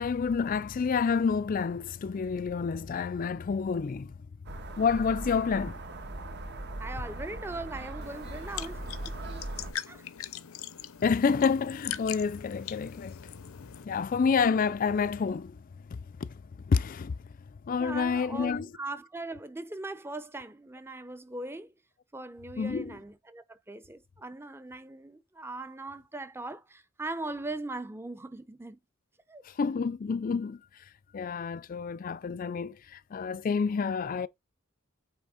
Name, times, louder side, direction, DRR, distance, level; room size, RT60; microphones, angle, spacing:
voice 1, 0.0-4.1 4.8-5.8 11.0-15.6 15.9-16.3 16.7-17.2 17.7-18.7 22.6-22.9 29.4-30.6 31.1-34.3, left 5 dB, 40° left, 0.4 m, -29 dB
sound 1, 4.5-9.7, right 1 dB, 55° right, 1.4 m, -39 dB
voice 2, 6.8-9.1 9.9-10.1 17.8-21.7 22.1-28.8 29.3-29.4, right 2 dB, 10° right, 0.6 m, -40 dB
sound 2, 8.0-13.8, left 11 dB, 90° left, 0.7 m, -41 dB
8.8 x 3.3 x 4.9 m
head